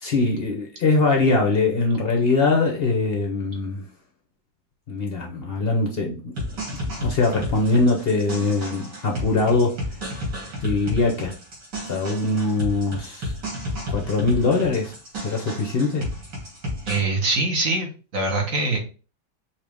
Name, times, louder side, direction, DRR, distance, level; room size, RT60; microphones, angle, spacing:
voice 1, 0.0-3.9 4.9-6.4 7.0-9.8 10.6-11.3 11.9-13.3 13.9-14.9 15.2-16.1, left 3 dB, 50° left, 0.7 m, -22 dB
sound 1, 6.4-17.0, left 1 dB, 65° right, 2.9 m, -32 dB
voice 2, 16.9-18.8, right 2 dB, 50° right, 1.4 m, -23 dB
5.7 x 2.7 x 3.4 m
omnidirectional pair, 2.0 m